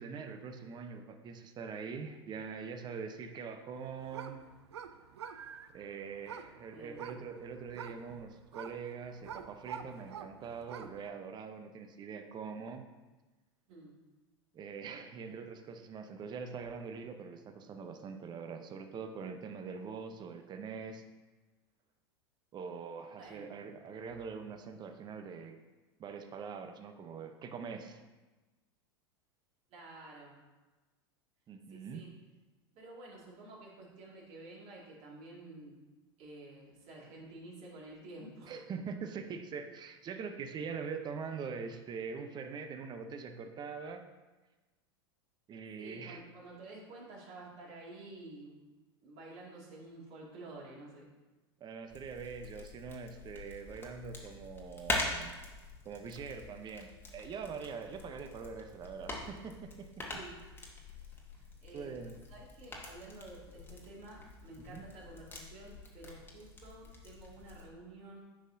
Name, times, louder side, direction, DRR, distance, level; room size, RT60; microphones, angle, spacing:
voice 1, 0.0-4.4 5.7-12.8 14.5-21.0 22.5-25.6 26.0-28.0 31.5-32.0 38.5-44.0 45.5-46.2 51.6-55.3 55.8-60.1 61.7-62.2 64.7-64.8, right 5 dB, 30° right, 7 dB, 0.8 m, -43 dB
sound 1, 3.7-11.1, right 8 dB, 85° right, 0.5 m, -48 dB
voice 2, 6.7-7.0 13.7-13.9 23.2-23.6 29.7-30.4 31.7-32.1 32.7-35.8 36.2-38.6 45.8-48.6 49.0-51.1 60.1-60.4 61.1-62.0 62.3-68.2, right 2 dB, 50° right, -3 dB, 2.4 m, -51 dB
sound 2, 51.9-67.7, left 2 dB, 15° left, 1.4 m, -44 dB
9.8 x 5.5 x 2.7 m, 1.2 s
hypercardioid pair, 95°, 14 cm